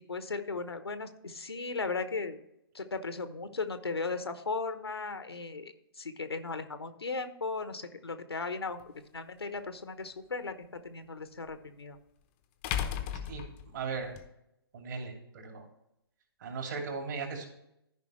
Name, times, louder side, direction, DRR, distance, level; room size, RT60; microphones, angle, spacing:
voice 1, 0.1-2.4 2.7-8.8 9.1-12.0, left 4 dB, 75° left, 10 dB, 1.0 m, -36 dB
sound 1, 8.8-8.9 11.5-11.6 12.6-14.2, left 9 dB, 25° left, 0.8 m, -35 dB
voice 2, 13.0-13.4 13.7-14.1 14.7-15.6 16.4-17.5, right 5 dB, 50° right, 2 dB, 2.8 m, -38 dB
14.0 x 5.5 x 3.1 m, 0.80 s
figure-of-eight pair, 125°, 13 cm